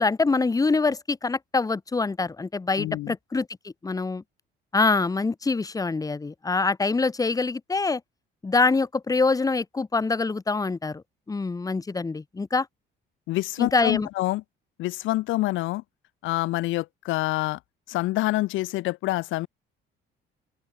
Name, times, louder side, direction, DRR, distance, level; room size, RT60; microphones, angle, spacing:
voice 1, 0.0-4.2 4.7-8.0 8.4-12.7 13.6-14.1, left 3 dB, 20° left, 4.3 m, -25 dB
voice 2, 2.8-3.1 13.3-14.4 14.8-15.8 16.2-17.6 17.9-19.5, left 18 dB, 85° left, 3.5 m, -26 dB
open air
cardioid pair, 140°, 20 cm